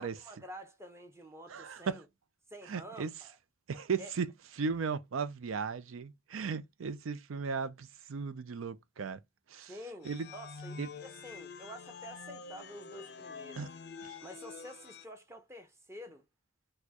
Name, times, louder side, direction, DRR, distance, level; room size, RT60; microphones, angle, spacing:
voice 1, 0.0-2.0 2.5-3.4 4.0-4.1 9.7-13.6 14.2-16.2, equal, 15° right, 0.7 m, -49 dB
voice 2, 1.5-2.0 2.7-3.1 3.7-4.3 4.6-9.2 9.5-9.7 10.0-10.3 10.8-10.9 13.6-13.7 14.0-14.1, right 5 dB, 90° right, 0.5 m, -36 dB
sound 1, 10.0-15.0, left 5 dB, 55° left, 0.5 m, -47 dB
4.2 x 2.2 x 2.8 m
head